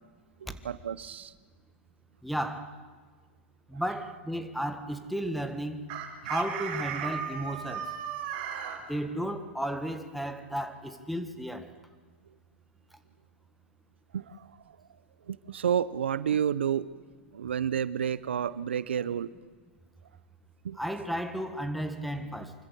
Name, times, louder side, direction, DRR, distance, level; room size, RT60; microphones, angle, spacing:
voice 1, 0.4-1.3 14.1-14.6 15.3-16.9 17.3-19.3 20.6-20.8, right 8 dB, 85° right, 0.7 m, -30 dB
voice 2, 2.2-2.7 3.7-5.8 6.3-7.9 8.9-11.7 20.8-22.5, equal, ahead, 1.7 m, -33 dB
Chicken rooster, 5.9-8.8, right 8 dB, 50° right, 4.0 m, -35 dB
25.0 x 14.0 x 8.3 m
hypercardioid pair, 115°, 6 cm